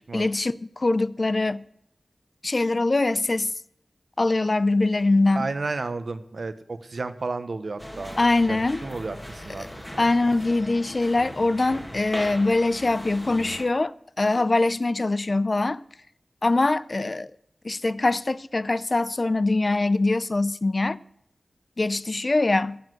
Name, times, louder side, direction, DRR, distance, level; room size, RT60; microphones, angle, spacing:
voice 1, 0.1-1.6 2.4-3.5 4.2-5.5 8.2-8.8 10.0-15.8 16.4-17.3 17.6-21.0 21.8-22.8, left 2 dB, 45° left, 0.6 m, -23 dB
voice 2, 5.3-8.2 8.5-9.6 9.9-10.1, right 3 dB, 65° right, 1.1 m, -32 dB
sound 1, 7.8-13.7, equal, 10° left, 2.1 m, -39 dB
17.5 x 7.4 x 6.2 m
wide cardioid pair, 75°, 0 cm